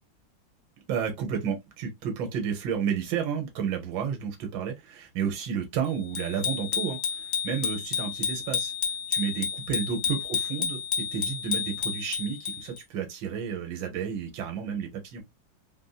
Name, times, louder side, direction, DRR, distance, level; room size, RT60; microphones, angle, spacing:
voice 1, 0.9-8.7 9.1-15.2, right 7 dB, 75° right, 1.6 m, -31 dB
Bicycle bell, 6.1-12.8, left 7 dB, 60° left, 0.9 m, -31 dB
3.5 x 2.6 x 2.3 m
omnidirectional pair, 2.1 m